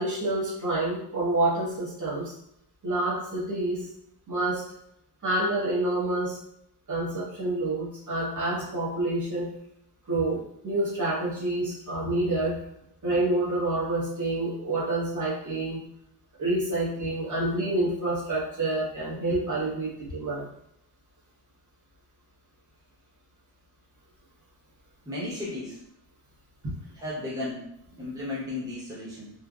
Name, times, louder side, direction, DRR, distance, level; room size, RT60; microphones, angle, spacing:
voice 1, 0.0-2.3 2.8-3.9 4.3-4.6 5.2-6.4 6.9-9.5 10.1-12.6 13.0-15.8 16.4-20.5 26.6-26.7, right 2 dB, 45° right, -8 dB, 1.2 m, -28 dB
voice 2, 25.1-25.8 26.9-29.3, left 2 dB, 10° right, -8 dB, 0.9 m, -35 dB
3.3 x 2.1 x 2.4 m, 0.76 s
cardioid pair, 100°, 43 cm